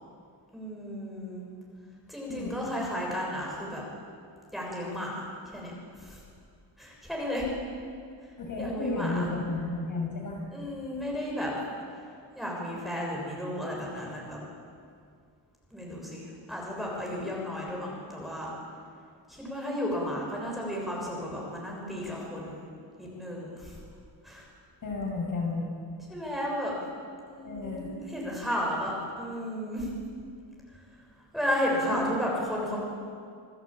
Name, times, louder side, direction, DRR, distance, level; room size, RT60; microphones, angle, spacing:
voice 1, 0.5-1.4 2.1-3.8 4.5-6.2 6.8-7.5 8.2-9.3 10.5-11.5 11.9-12.0 12.3-14.4 15.7-18.5 19.3-22.7 23.0-23.8 24.2-24.5 26.1-26.7 27.3-29.9 30.7-30.8 31.3-32.8, equal, ahead, -3 dB, 6.8 m, -33 dB
voice 2, 2.3-2.6 8.4-10.4 24.8-25.6 27.4-27.9 31.9-32.0, left 3 dB, 45° left, -1 dB, 6.6 m, -32 dB
27.5 x 18.5 x 8.9 m, 2.2 s
wide cardioid pair, 160°, 46 cm